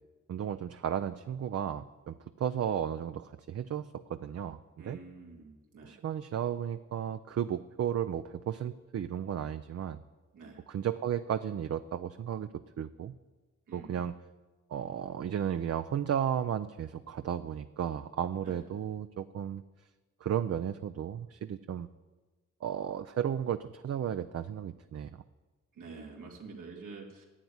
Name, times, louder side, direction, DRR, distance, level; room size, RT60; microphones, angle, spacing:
voice 1, 0.3-4.6 4.8-5.0 5.8-10.0 10.7-13.1 13.7-14.1 14.7-19.6 20.2-21.9 22.6-25.2, right 9 dB, 55° right, 10 dB, 0.5 m, -34 dB
voice 2, 4.8-6.0 10.3-10.6 13.7-14.0 18.4-18.6 25.7-27.3, right 4 dB, 85° right, 0 dB, 2.4 m, -47 dB
11.5 x 8.0 x 9.6 m, 1.2 s
cardioid pair, 60°, 30 cm